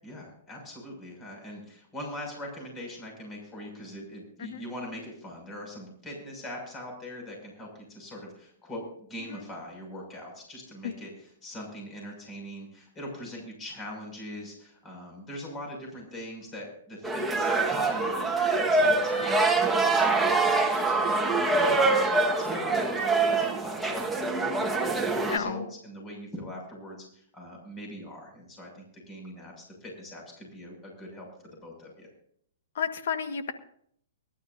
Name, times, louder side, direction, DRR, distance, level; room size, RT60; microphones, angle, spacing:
voice 1, 0.0-19.4 19.7-32.1, left 1 dB, 20° left, 1 dB, 6.6 m, -42 dB
sound 1, 17.0-25.4, right 3 dB, 5° right, 1.5 m, -25 dB
voice 2, 25.3-25.7 32.7-33.5, left 7 dB, 70° left, 8 dB, 1.6 m, -31 dB
23.5 x 12.0 x 2.7 m, 0.65 s
hypercardioid pair, 130°, 0 cm